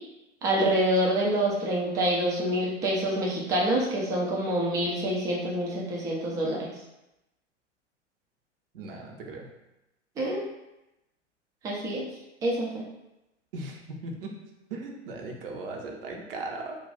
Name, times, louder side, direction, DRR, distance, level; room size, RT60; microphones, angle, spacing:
voice 1, 0.4-6.7 10.2-10.4 11.6-12.1 12.4-12.8, right 1 dB, 10° right, -3 dB, 0.3 m, -26 dB
voice 2, 8.7-9.5 13.5-14.3 14.7-16.8, right 2 dB, 50° right, 1 dB, 0.7 m, -38 dB
2.4 x 2.2 x 3.9 m, 0.93 s
figure-of-eight pair, 100°, 36 cm